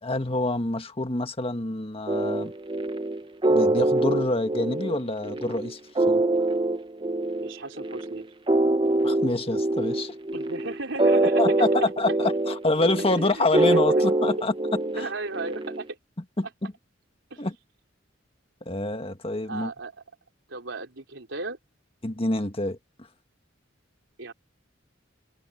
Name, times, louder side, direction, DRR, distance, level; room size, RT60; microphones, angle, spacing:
voice 1, 0.0-2.5 3.5-5.8 6.1-6.2 9.0-10.1 11.4-14.5 14.9-15.1 16.4-16.7 17.4-17.5 18.6-19.7 22.0-22.8, left 2 dB, 30° left, 1.7 m, -27 dB
sound 1, 2.1-15.8, right 2 dB, 25° right, 0.9 m, -25 dB
voice 2, 7.4-8.3 10.3-11.4 13.1-13.6 13.9-14.0 15.0-16.0 17.3-17.4 19.5-20.0 20.5-21.6 24.2-24.3, right 2 dB, 70° right, 4.4 m, -35 dB
head